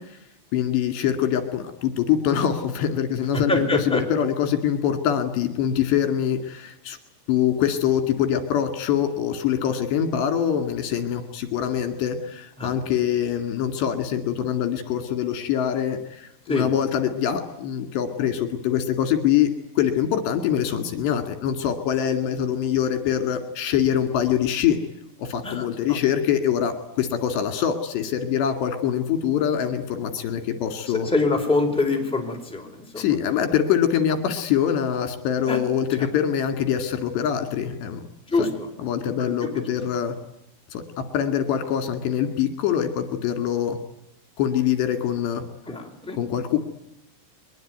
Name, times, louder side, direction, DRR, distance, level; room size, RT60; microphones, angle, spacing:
voice 1, 0.5-7.0 7.3-19.5 19.8-24.8 25.2-31.1 33.0-38.0 38.4-38.5 38.8-40.2 40.7-43.8 44.4-45.4 46.2-46.6, left 9 dB, 70° left, 8 dB, 4.3 m, -24 dB
voice 2, 3.3-4.0 12.6-12.7 16.5-16.7 25.4-26.0 31.0-33.2 35.5-35.6 36.0-36.1 38.3-38.7 39.0-39.8 45.7-46.2, left 2 dB, ahead, 2 dB, 4.2 m, -25 dB
23.0 x 22.0 x 9.3 m, 0.81 s
omnidirectional pair, 5.2 m